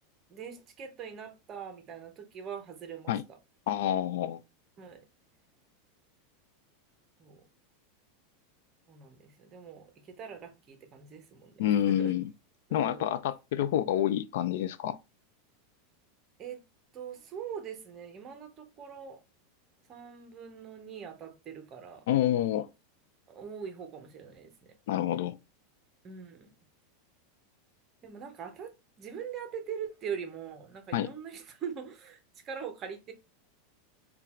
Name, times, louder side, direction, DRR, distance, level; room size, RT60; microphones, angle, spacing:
voice 1, 0.3-3.4 4.8-5.0 7.2-7.4 8.9-12.2 12.7-13.1 16.4-16.6 16.9-19.2 19.9-22.1 23.3-24.7 26.0-26.5 28.0-28.7 29.0-33.1, right 7 dB, 25° right, 0.7 m, -42 dB
voice 2, 3.7-4.4 11.6-12.3 12.7-15.0 22.1-22.7 24.9-25.4 30.9-31.1, left 11 dB, 65° left, 0.3 m, -28 dB
3.8 x 2.3 x 4.2 m
supercardioid pair, 170°, 0 cm